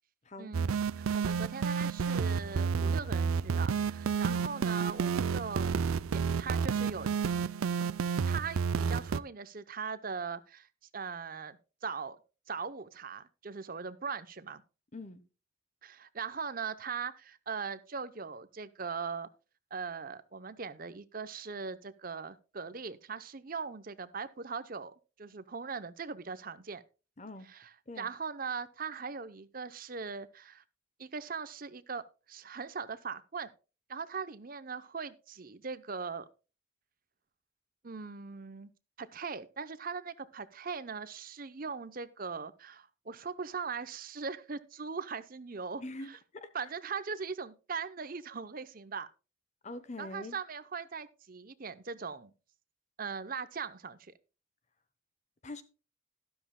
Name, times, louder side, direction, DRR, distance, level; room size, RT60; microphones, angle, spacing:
voice 1, 0.4-5.7 6.1-7.1 8.2-10.7 10.9-12.2 12.5-14.6 15.8-19.3 19.7-26.8 27.5-30.6 31.0-33.5 33.9-36.3 37.8-38.7 39.0-46.2 46.5-49.1 50.0-52.3 53.0-54.1, right 5 dB, 45° right, 0.7 m, -40 dB
sound 1, 0.5-9.2, right 6 dB, 85° right, 0.4 m, -30 dB
voice 2, 27.2-27.5 27.9-28.1 45.8-46.5 49.6-50.3 55.4-55.6, left 2 dB, 35° left, 0.8 m, -43 dB
12.5 x 12.5 x 2.2 m
head